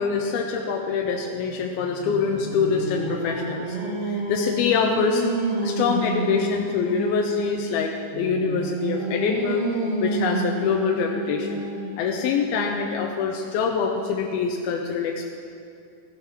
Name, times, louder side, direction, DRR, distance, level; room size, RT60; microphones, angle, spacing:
voice 1, 0.0-5.2 5.6-9.7 10.0-11.6 12.0-15.3, left 5 dB, 80° left, 1 dB, 2.7 m, -25 dB
Singing, 2.1-7.5 8.1-12.0, right 2 dB, 75° right, 4.1 m, -29 dB
16.0 x 11.5 x 5.9 m, 2.4 s
omnidirectional pair, 4.4 m